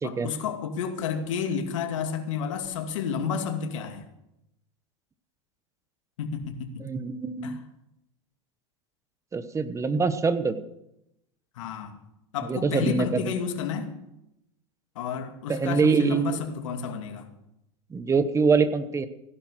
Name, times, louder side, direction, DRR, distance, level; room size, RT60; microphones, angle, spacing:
voice 1, 0.0-4.0 6.2-6.9 7.4-7.6 11.6-12.0 12.3-13.9 15.0-17.3, left 6 dB, 80° left, 5 dB, 2.4 m, -31 dB
voice 2, 6.8-7.6 9.3-10.6 12.5-13.3 15.5-16.4 17.9-19.1, right 5 dB, 20° right, 12 dB, 1.2 m, -24 dB
16.5 x 11.0 x 6.4 m, 0.84 s
hypercardioid pair, 110°, 16 cm